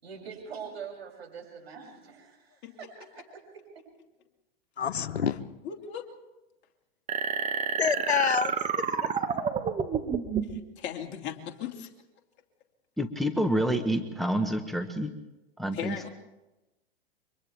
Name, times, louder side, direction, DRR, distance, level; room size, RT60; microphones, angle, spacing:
voice 1, 0.0-3.1 3.3-3.8, right 6 dB, 75° right, 0 dB, 7.8 m, -44 dB
voice 2, 4.8-5.4 7.8-8.5, left 7 dB, 85° left, 12 dB, 1.1 m, -27 dB
voice 3, 5.6-6.1 10.8-11.9 15.7-16.1, left 9 dB, 35° left, 2 dB, 2.7 m, -37 dB
sound 1, 7.1-10.6, right 6 dB, 20° right, 1.6 m, -29 dB
voice 4, 13.0-15.1 15.6-15.9, equal, ahead, 6 dB, 1.3 m, -28 dB
30.0 x 25.0 x 3.6 m, 1.0 s
hypercardioid pair, 110°, 31 cm